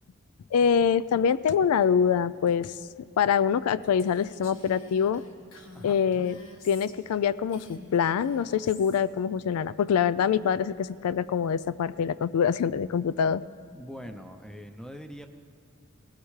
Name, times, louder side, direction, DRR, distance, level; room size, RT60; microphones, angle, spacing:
voice 1, 0.5-2.7 3.2-5.2 5.8-6.4 6.6-13.4, left 7 dB, 85° left, 17 dB, 0.3 m, -25 dB
Female speech woman speaking, 4.0-7.2 7.5-9.0, left 2 dB, 65° left, 1.4 m, -47 dB
voice 2, 13.7-15.3, equal, 5° left, 7 dB, 0.6 m, -43 dB
19.5 x 16.5 x 3.2 m, 2.6 s
head